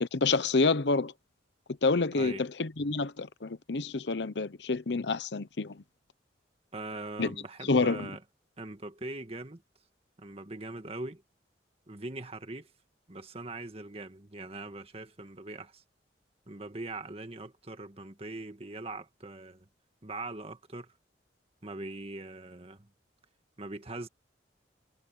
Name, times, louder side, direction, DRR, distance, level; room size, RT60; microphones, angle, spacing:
voice 1, 0.0-1.1 1.8-5.8 7.2-7.3 7.7-8.1, left 3 dB, 70° left, 0.8 m, -28 dB
voice 2, 6.7-8.2 8.6-9.6 10.2-11.2 11.9-12.7 13.1-15.8 16.5-19.7 20.0-20.9 21.6-22.9 23.6-24.1, right 2 dB, 35° right, 1.8 m, -41 dB
head